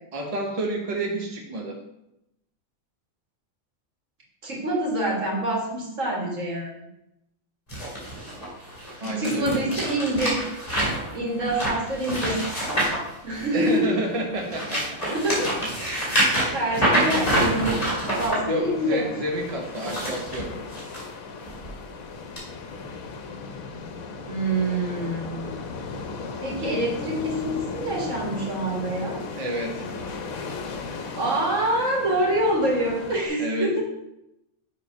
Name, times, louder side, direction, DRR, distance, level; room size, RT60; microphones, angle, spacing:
voice 1, 0.1-1.8 9.0-9.6 13.5-15.0 16.6-16.8 18.5-20.5 29.4-29.9 31.0-31.2 33.4-33.7, right 1 dB, 30° right, 0 dB, 0.9 m, -29 dB
voice 2, 4.4-6.7 9.1-10.4 11.1-12.4 13.2-14.1 15.1-15.5 16.1-17.8 18.2-19.0 24.3-25.5 26.4-29.2 30.9-33.8, right 1 dB, 65° right, -3 dB, 2.1 m, -26 dB
sound 1, 7.7-13.8 14.3-18.4 19.6-21.0 21.5-21.7 22.4-22.5, right 1 dB, 25° left, 2.5 m, -26 dB
sound 2, 14.7-33.3, left 4 dB, 80° left, 1.2 m, -37 dB
7.1 x 3.6 x 5.4 m, 0.85 s
omnidirectional pair, 1.4 m